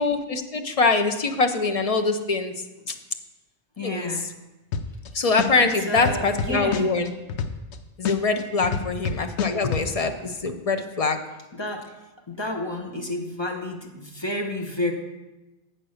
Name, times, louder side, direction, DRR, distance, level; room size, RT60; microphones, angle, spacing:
voice 1, 0.0-2.5 3.8-4.1 5.1-7.1 8.0-11.2, left 3 dB, 40° left, 7 dB, 0.6 m, -23 dB
voice 2, 3.8-4.3 5.5-7.0 8.6-9.0 11.5-11.9 12.3-14.9, left 1 dB, 25° left, 1 dB, 1.0 m, -30 dB
sound 1, 4.7-5.1 5.4-7.7 8.0-9.8, left 7 dB, 80° left, 0.9 m, -27 dB
7.8 x 5.8 x 6.4 m, 1.1 s
omnidirectional pair, 1.1 m